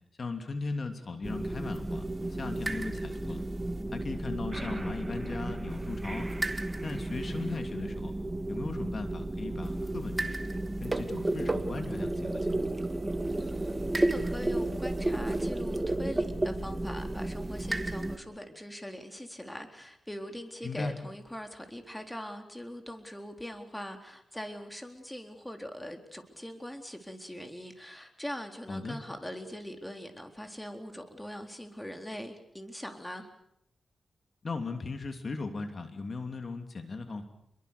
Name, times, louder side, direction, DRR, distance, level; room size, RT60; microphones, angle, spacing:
voice 1, 0.2-3.4 3.9-6.3 6.8-8.1 8.5-10.4 10.8-12.4 20.6-21.0 28.7-29.0 34.4-37.2, left 3 dB, 50° left, 6 dB, 2.9 m, -37 dB
sound 1, 1.2-18.2, right 2 dB, 20° right, 2.1 m, -32 dB
voice 2, 13.4-33.3, equal, 10° left, 5 dB, 3.9 m, -42 dB
29.5 x 22.5 x 6.8 m, 0.73 s
cardioid pair, 70°, 0 cm